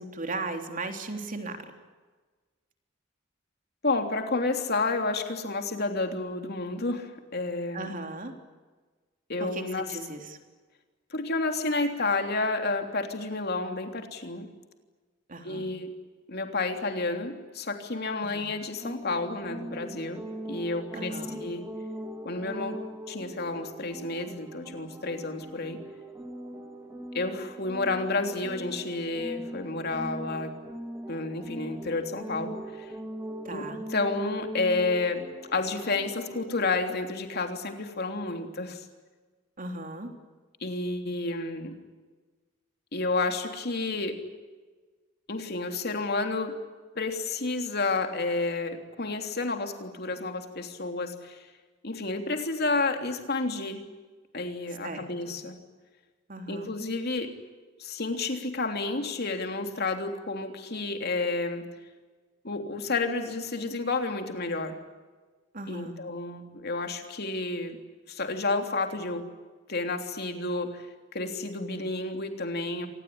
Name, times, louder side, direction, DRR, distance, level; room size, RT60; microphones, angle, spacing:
voice 1, 0.0-1.6 7.7-8.3 9.4-10.4 15.3-15.7 18.2-18.5 20.9-21.4 33.4-33.8 39.6-40.1 54.8-55.3 56.3-56.7 65.5-66.0, right 2 dB, 45° right, 5 dB, 3.4 m, -37 dB
voice 2, 3.8-7.9 9.3-10.0 11.1-14.5 15.4-15.9 16.3-21.7 22.2-25.8 27.1-30.5 31.1-32.9 33.5-38.9 40.6-41.8 42.9-44.2 45.3-46.6 46.9-51.5 51.8-53.8 54.3-55.5 56.5-57.4 57.8-61.7 62.4-64.8 65.7-67.8 68.1-69.3 69.7-70.9 71.1-72.9, left 3 dB, 55° left, 5 dB, 3.3 m, -30 dB
sound 1, 18.8-36.7, right 1 dB, 10° right, 3.1 m, -41 dB
26.5 x 19.5 x 10.0 m, 1.3 s
head